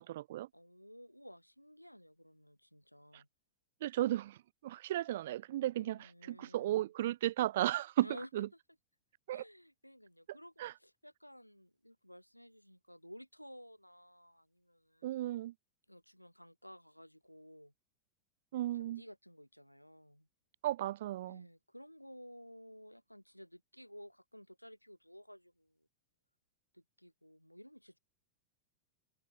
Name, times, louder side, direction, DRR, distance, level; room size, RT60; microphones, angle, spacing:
voice 1, 0.0-0.5 3.1-3.2 3.8-8.1 8.3-8.5 9.3-9.4 10.6-10.7 15.0-15.5 18.5-19.0 20.6-21.5, right 14 dB, 55° right, 0.7 m, -35 dB
voice 2, 0.5-3.3 5.8-6.9 8.0-8.3 9.3-10.5 10.8-15.2 15.9-17.7 18.8-20.3 21.3-25.9 26.7-28.0, equal, 90° left, 4.3 m, -54 dB
figure-of-eight pair, 90°, 0 cm